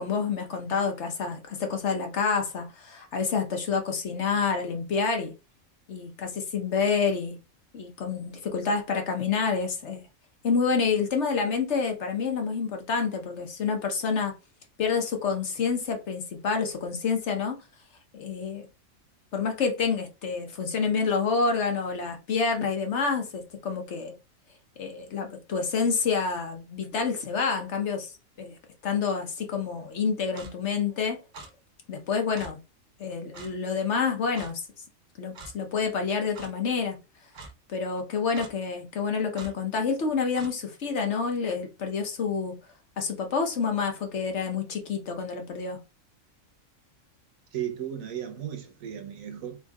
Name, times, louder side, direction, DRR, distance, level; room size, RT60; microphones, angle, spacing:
voice 1, 0.0-5.3 5.9-7.4 7.7-10.0 10.4-14.3 14.8-17.6 18.1-18.6 19.3-24.2 24.8-28.1 28.4-28.6 28.8-31.2 31.9-32.6 33.0-34.6 35.2-37.0 37.7-42.6 43.0-45.8, left 5 dB, 60° left, 1.2 m, -28 dB
Clock, 30.3-30.5 31.3-31.5 32.3-32.5 33.3-33.5 34.3-34.5 35.3-35.5 36.3-36.5 37.3-37.5 38.3-38.5 39.3-39.5 40.3-40.5, right 3 dB, 45° right, 0.8 m, -43 dB
voice 2, 47.5-49.6, right 10 dB, 75° right, 1.2 m, -35 dB
4.0 x 3.6 x 2.3 m
omnidirectional pair, 1.4 m